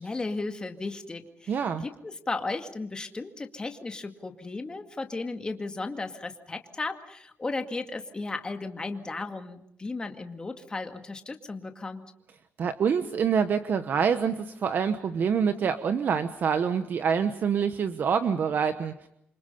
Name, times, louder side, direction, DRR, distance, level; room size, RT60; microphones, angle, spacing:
voice 1, 0.0-12.0, left 3 dB, 20° left, 6 dB, 2.1 m, -35 dB
voice 2, 1.5-1.8 12.6-19.1, right 7 dB, 50° right, 10 dB, 1.1 m, -26 dB
28.0 x 25.0 x 5.5 m, 0.76 s
cardioid pair, 135°, 4 cm